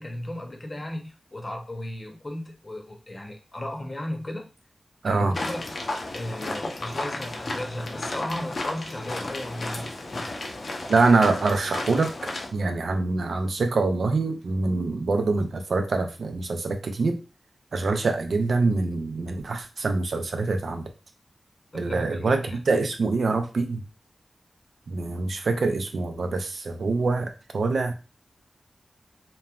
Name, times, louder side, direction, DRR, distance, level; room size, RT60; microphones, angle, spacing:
voice 1, 0.0-4.5 5.0-5.7 6.1-10.5 21.7-22.6, left 1 dB, 40° left, 3 dB, 0.7 m, -35 dB
voice 2, 5.0-5.4 10.9-17.2 17.7-20.9 21.7-23.8 24.9-27.9, right 3 dB, 80° right, 6 dB, 0.4 m, -25 dB
sound 1, 5.3-12.5, left 2 dB, 75° left, 0.6 m, -33 dB
3.0 x 2.1 x 2.3 m, 0.30 s
cardioid pair, 50°, 0 cm